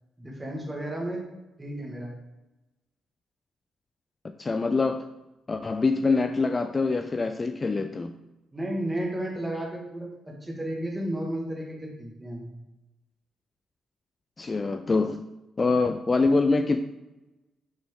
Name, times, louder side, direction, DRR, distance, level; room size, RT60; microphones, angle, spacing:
voice 1, 0.2-1.2 1.6-2.1 8.5-10.1 10.4-12.5, right 1 dB, 15° right, -1 dB, 1.6 m, -32 dB
voice 2, 4.4-5.1 5.5-8.1 14.4-15.2 15.6-16.8, left 3 dB, 30° left, 7 dB, 0.3 m, -24 dB
6.0 x 4.2 x 3.7 m, 0.99 s
cardioid pair, 90°, 0 cm